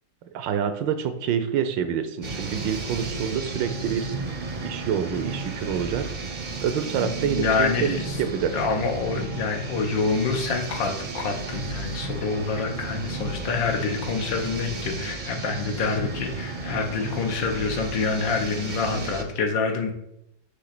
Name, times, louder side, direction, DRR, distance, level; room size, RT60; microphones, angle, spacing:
voice 1, 0.3-4.0 4.6-6.1 6.6-8.0 8.4-8.5, right 8 dB, 85° right, 10 dB, 1.4 m, -27 dB
sound 1, 2.2-19.2, right 3 dB, 50° right, 0.5 m, -33 dB
voice 2, 7.0-8.2 8.5-19.9, left 4 dB, 90° left, 3 dB, 1.8 m, -27 dB
6.3 x 3.2 x 5.9 m, 0.79 s
omnidirectional pair, 2.0 m